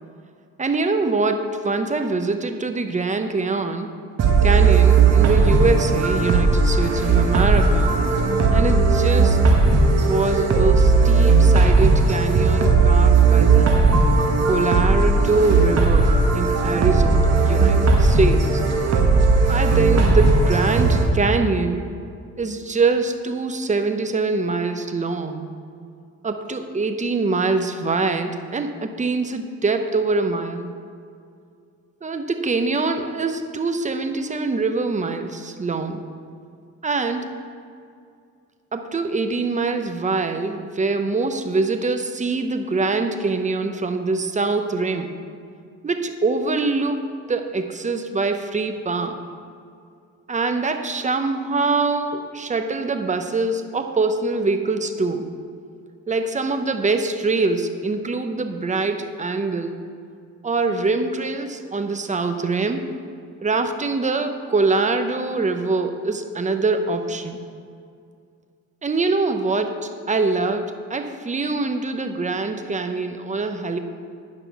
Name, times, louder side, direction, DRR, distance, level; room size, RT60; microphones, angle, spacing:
voice 1, 0.6-3.9 4.4-7.9 8.5-9.4 10.0-13.7 14.5-18.6 19.5-21.9 22.4-25.5 26.2-30.7 32.0-36.0 36.8-37.3 38.7-45.1 45.8-49.2 50.3-55.3 56.1-59.8 60.4-62.8 63.4-67.4 68.8-73.8, right 3 dB, 25° right, 7 dB, 0.8 m, -24 dB
sound 1, 4.2-21.0, right 4 dB, 55° right, 1.4 m, -17 dB
9.4 x 5.8 x 5.8 m, 2.3 s
cardioid pair, 90°, 30 cm